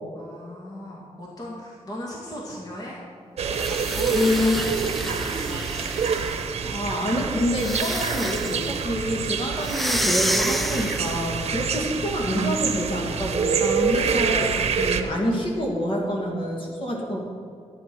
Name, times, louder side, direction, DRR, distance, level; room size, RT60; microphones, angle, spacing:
voice 1, 0.1-3.0 3.4-5.6, left 1 dB, 35° left, -3 dB, 2.1 m, -37 dB
sound 1, 3.4-15.0, right 6 dB, 65° right, 0.9 m, -27 dB
sound 2, 3.5-6.5 7.5-8.7 9.6-11.3, equal, ahead, 0.5 m, -30 dB
voice 2, 4.1-4.6 6.6-17.2, equal, 50° left, -1 dB, 2.5 m, -26 dB
12.0 x 9.2 x 6.1 m, 2.4 s
wide cardioid pair, 135°, 11 cm